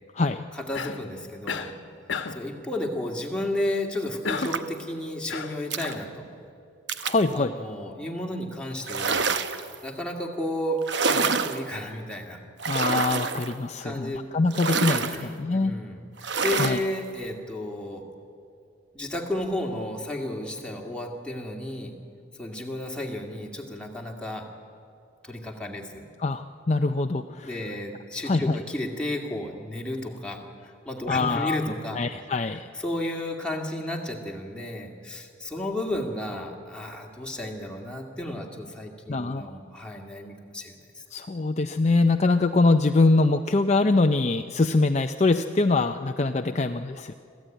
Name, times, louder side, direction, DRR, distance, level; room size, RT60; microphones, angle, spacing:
voice 1, 0.5-1.8 2.3-6.3 7.3-9.3 9.8-12.4 13.8-14.2 15.1-16.0 16.4-18.1 18.9-21.9 22.4-24.5 25.2-26.1 27.4-32.0 32.5-41.0, left 1 dB, 5° left, 0 dB, 2.1 m, -33 dB
Cough, 0.7-1.1 1.5-1.8 2.1-2.5 4.2-4.7 5.3-6.0, left 5 dB, 70° left, 1.2 m, -32 dB
sound 1, 4.4-4.8 5.7-5.9 6.9-7.3 8.8-9.7 10.8-11.6 12.6-13.5 14.5-15.2 16.2-16.9, right 5 dB, 60° right, 0.9 m, -27 dB
voice 2, 7.0-7.5 12.7-15.7 16.6-16.8 26.2-27.7 28.3-28.6 31.1-32.7 39.1-39.4 41.1-47.1, left 3 dB, 35° left, 6 dB, 0.5 m, -23 dB
26.0 x 15.0 x 9.1 m, 2.4 s
head